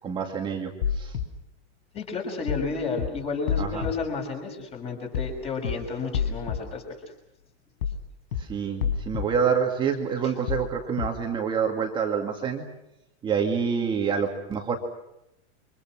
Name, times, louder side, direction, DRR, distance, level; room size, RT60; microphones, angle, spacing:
voice 1, 0.0-1.1 3.6-3.9 8.4-12.7 13.2-14.8, right 6 dB, 15° right, 2 dB, 2.3 m, -27 dB
sound 1, 0.8-1.2 2.5-2.7 3.0-3.1 3.5-3.9 5.1-5.3 5.6-5.7 6.1-6.6 7.8-8.0 8.3-8.4 8.8-9.2 10.5-10.7 11.0-11.1, left 7 dB, 75° left, 4.5 m, -27 dB
voice 2, 1.9-6.8, left 4 dB, 15° left, 3 dB, 6.0 m, -31 dB
30.0 x 25.5 x 6.2 m, 0.84 s
supercardioid pair, 175°, 34 cm